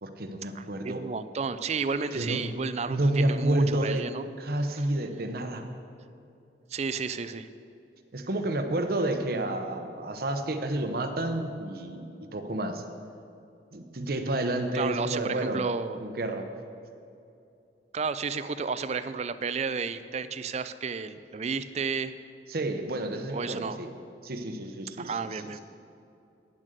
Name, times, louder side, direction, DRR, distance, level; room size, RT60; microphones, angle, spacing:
voice 1, 0.0-1.0 2.1-2.4 2.9-4.0 4.4-5.6 8.1-12.8 13.7-15.6 16.0-16.4 22.5-23.9 24.2-25.6, right 1 dB, 55° right, 6 dB, 0.8 m, -30 dB
voice 2, 0.5-4.3 4.8-4.9 6.7-7.5 14.7-16.0 17.9-22.1 23.3-23.8 25.0-25.6, right 5 dB, 35° right, 13 dB, 0.4 m, -32 dB
10.0 x 7.3 x 6.7 m, 2.7 s
head